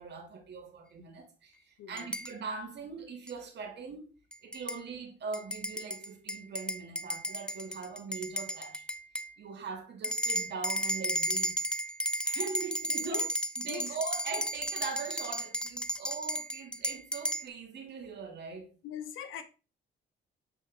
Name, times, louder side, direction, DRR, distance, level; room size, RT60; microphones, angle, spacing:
voice 1, 0.0-4.1 4.4-8.8 9.4-11.6 12.2-13.3 13.6-18.7, right 5 dB, 60° right, 1.9 m, -41 dB
voice 2, 1.8-2.1 13.0-13.3 13.7-14.0 18.8-19.4, left 9 dB, 85° left, 0.9 m, -41 dB
sound 1, 2.0-2.3 3.3-3.4 4.3-4.8 5.3-9.3 10.0-17.5, equal, 5° left, 0.6 m, -33 dB
7.7 x 4.5 x 3.4 m
cardioid pair, 90°, 20 cm